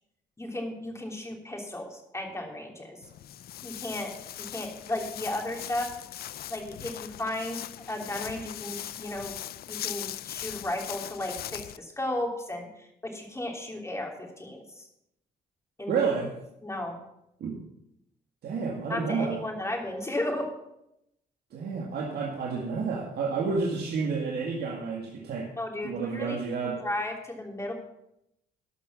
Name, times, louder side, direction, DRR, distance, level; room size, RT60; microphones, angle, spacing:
voice 1, 0.4-3.0 3.6-4.1 4.5-5.9 6.5-9.3 9.7-14.9 15.8-16.0 16.6-17.0 18.9-20.5 25.6-26.4 26.8-27.7, left 1 dB, 15° left, 1 dB, 3.3 m, -34 dB
Walk footsteps, 3.0-11.8, left 12 dB, 65° left, 0.5 m, -40 dB
voice 2, 15.9-16.3 17.4-17.6 18.4-19.4 21.5-25.5 25.8-26.8, right 5 dB, 65° right, -1 dB, 2.0 m, -30 dB
12.5 x 6.0 x 7.0 m, 0.82 s
supercardioid pair, 70°, 18 cm